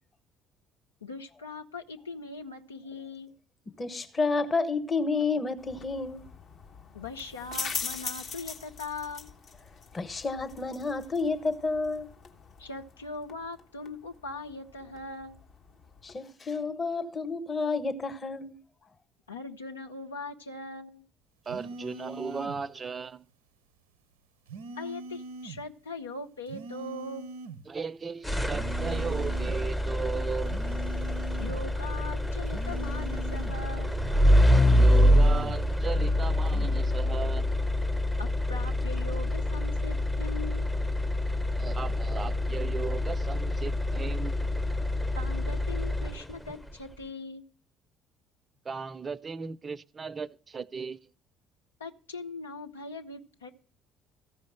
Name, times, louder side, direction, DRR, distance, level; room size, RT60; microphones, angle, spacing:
voice 1, 1.0-3.3 6.9-9.3 12.6-15.4 19.3-21.0 24.8-27.3 31.4-34.0 38.2-40.7 45.2-47.4 51.8-53.5, left 3 dB, 85° left, 0.7 m, -40 dB
voice 2, 3.8-6.2 9.9-12.1 16.0-18.6, left 4 dB, 30° left, 1.2 m, -30 dB
sound 1, 5.6-16.2, left 5 dB, 45° left, 1.3 m, -42 dB
voice 3, 21.5-23.3 27.7-30.6 34.7-37.5 41.6-44.4 48.6-51.0, right 5 dB, 30° right, 0.5 m, -36 dB
sound 2, 21.5-22.6 24.5-25.6 26.5-27.6 28.5-29.6 30.5-31.6 32.5-33.6 34.5-35.6 36.5-36.8, right 2 dB, 75° right, 0.6 m, -42 dB
sound 3, 28.2-46.5, left 1 dB, 10° left, 0.7 m, -26 dB
14.0 x 5.1 x 8.9 m
figure-of-eight pair, 55°, 0 cm